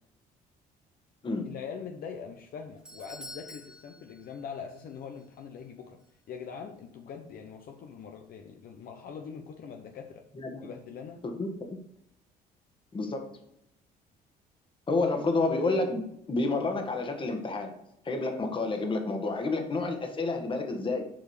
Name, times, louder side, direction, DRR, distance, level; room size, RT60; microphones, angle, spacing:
voice 1, 1.4-6.0 6.3-10.2 10.6-11.2, left 6 dB, 60° left, 3 dB, 0.9 m, -42 dB
Doorbell, 2.4-4.9 5.2-5.3 6.0-6.1, left 1 dB, 5° right, 1.2 m, -48 dB
voice 2, 10.4-10.7 11.2-11.8 12.9-13.4 14.9-17.7 18.1-21.1, left 3 dB, 30° left, 4 dB, 1.6 m, -30 dB
7.4 x 4.8 x 5.0 m, 0.77 s
cardioid pair, 110°, 17 cm